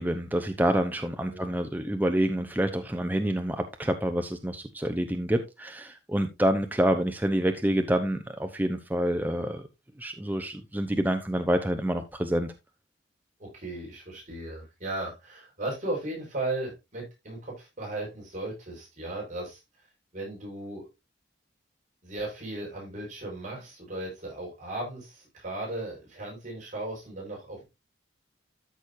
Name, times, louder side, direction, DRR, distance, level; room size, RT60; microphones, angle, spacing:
voice 1, 0.0-9.7 10.0-12.5, right 1 dB, 10° right, 0.8 m, -27 dB
voice 2, 13.4-19.6 20.1-20.8 22.0-27.6, right 2 dB, 45° right, 5.3 m, -36 dB
13.5 x 6.2 x 2.6 m
head